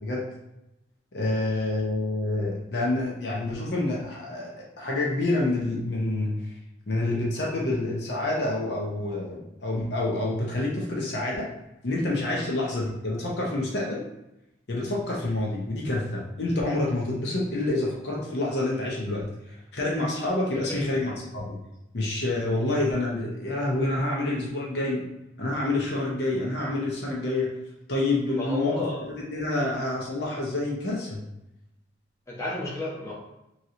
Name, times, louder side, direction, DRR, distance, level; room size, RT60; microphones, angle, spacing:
voice 1, 1.1-6.4 6.9-11.5 11.8-14.0 14.7-21.6 21.9-25.0 25.4-27.5 27.9-28.9 29.2-31.2, left 2 dB, 65° left, -3 dB, 0.7 m, -28 dB
voice 2, 28.3-29.0 32.3-33.1, left 2 dB, 15° left, -7 dB, 0.8 m, -32 dB
3.0 x 2.8 x 2.5 m, 0.89 s
head